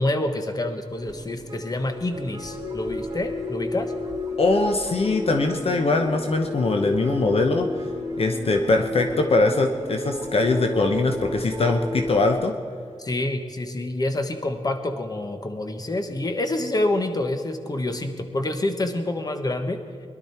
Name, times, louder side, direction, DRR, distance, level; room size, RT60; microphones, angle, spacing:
voice 1, 0.0-3.9 13.0-19.8, left 1 dB, 35° left, 6 dB, 1.3 m, -27 dB
sound 1, 0.9-12.3, left 1 dB, 30° right, 3.2 m, -32 dB
voice 2, 4.4-7.7 8.2-12.5, left 3 dB, 55° left, 4 dB, 1.0 m, -22 dB
22.0 x 11.5 x 4.4 m, 2.3 s
wide cardioid pair, 110°, 12 cm